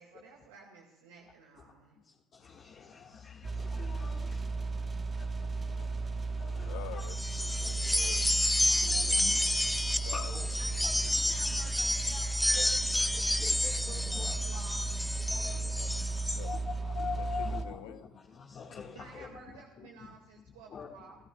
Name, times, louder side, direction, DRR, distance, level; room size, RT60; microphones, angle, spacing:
voice 1, 0.0-2.0 7.7-7.9 9.0-9.4 10.6-15.0 18.9-21.2, right 5 dB, 90° right, 1.7 m, -53 dB
voice 2, 2.6-3.3 3.7-4.2 6.4-7.1 7.6-7.7 8.8-9.5 10.0-10.5 10.8-11.1 12.6-12.7 13.4-14.4 15.3-15.6 16.4-16.6 16.9-18.0 18.4-19.3 19.8-19.9 20.7-20.9, left 6 dB, 50° left, 1.5 m, -42 dB
sound 1, 3.4-17.6, right 4 dB, 30° right, 1.0 m, -35 dB
voice 3, 6.4-9.2 10.0-10.8 15.4-16.5 16.8-18.1, left 15 dB, 85° left, 0.7 m, -49 dB
sound 2, 7.0-16.4, left 1 dB, 5° left, 0.5 m, -30 dB
25.5 x 14.0 x 2.2 m
supercardioid pair, 75°, 0 cm